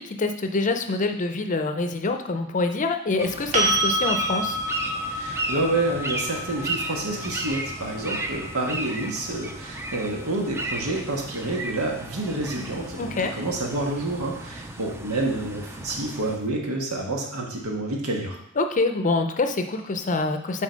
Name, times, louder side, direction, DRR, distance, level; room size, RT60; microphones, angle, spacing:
voice 1, 0.0-4.6 13.0-13.3 18.6-20.6, left 3 dB, 35° left, 7 dB, 0.6 m, -25 dB
sound 1, 3.2-16.4, right 2 dB, 10° right, 0.5 m, -35 dB
sound 2, 3.5-11.4 14.2-14.3, right 1 dB, 30° right, 1.3 m, -30 dB
voice 2, 5.1-18.4, right 2 dB, 90° right, 0 dB, 1.5 m, -28 dB
7.4 x 4.1 x 5.2 m, 0.74 s
head